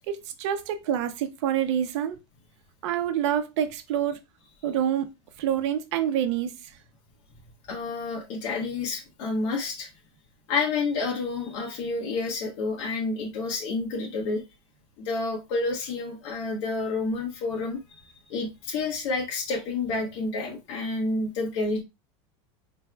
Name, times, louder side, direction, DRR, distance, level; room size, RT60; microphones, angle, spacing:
voice 1, 0.1-2.2 2.8-4.2 4.6-5.1 5.4-6.7, right 10 dB, 75° right, 0.7 m, -27 dB
voice 2, 7.7-9.9 10.5-14.4 15.0-17.8 18.3-21.8, left 3 dB, 70° left, 1.3 m, -29 dB
4.6 x 3.3 x 2.2 m
supercardioid pair, 175°, 15 cm